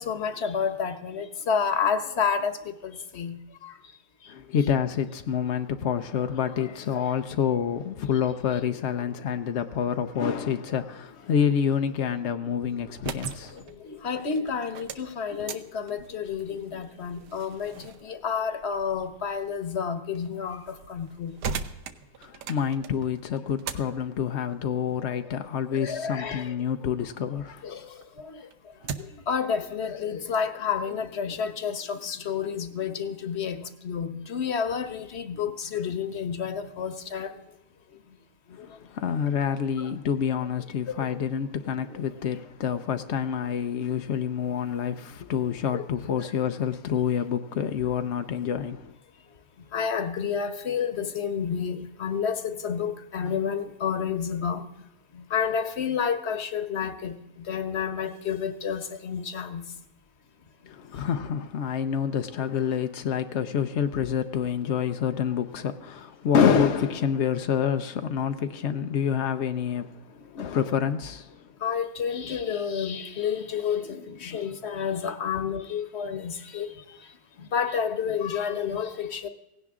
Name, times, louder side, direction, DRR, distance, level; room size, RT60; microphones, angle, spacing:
voice 1, 0.0-3.4 14.0-17.7 18.0-20.6 20.9-21.3 25.7-26.4 27.6-27.8 29.3-37.3 39.8-39.9 41.0-41.1 45.7-45.8 49.7-54.6 55.3-57.2 57.5-59.6 71.6-76.7 77.5-79.3, left 7 dB, 40° left, 1.1 m, -29 dB
voice 2, 4.3-13.6 22.2-27.7 38.6-48.9 60.7-71.4, left 8 dB, 70° left, 0.6 m, -27 dB
sound 1, 12.8-27.5 27.9-29.3, right 6 dB, 65° right, 1.4 m, -41 dB
18.0 x 16.5 x 3.7 m
omnidirectional pair, 2.0 m